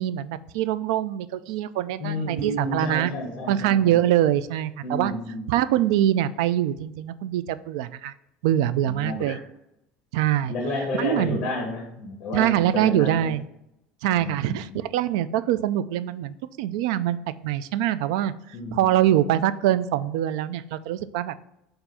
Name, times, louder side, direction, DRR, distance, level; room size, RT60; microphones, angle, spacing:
voice 1, 0.0-3.1 3.5-5.1 5.5-8.1 8.4-9.4 10.1-10.5 11.0-11.4 12.3-13.4 14.0-17.2 17.4-18.3 18.7-21.3, right 12 dB, 85° right, 15 dB, 0.3 m, -24 dB
voice 2, 2.0-4.0 4.8-5.7 8.8-9.4 10.4-13.3 14.1-14.9 18.5-18.9, left 1 dB, 30° left, 1 dB, 1.4 m, -31 dB
6.9 x 2.6 x 5.5 m, 0.82 s
cardioid pair, 155°, 3 cm